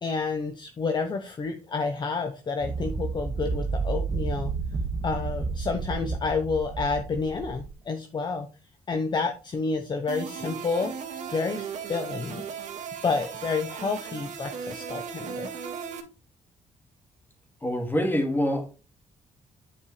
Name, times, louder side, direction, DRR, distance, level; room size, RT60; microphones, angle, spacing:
voice 1, 0.0-4.5 5.0-8.5 8.9-10.9 11.3-12.4 13.0-15.7, left 4 dB, 35° left, 0.9 m, -29 dB
sound 1, 2.6-7.7, right 4 dB, 35° right, 1.5 m, -31 dB
sound 2, 10.1-16.0, right 7 dB, 65° right, 1.9 m, -37 dB
voice 2, 17.6-18.7, equal, 15° left, 2.1 m, -25 dB
9.8 x 5.3 x 3.2 m
cardioid pair, 130°, 13 cm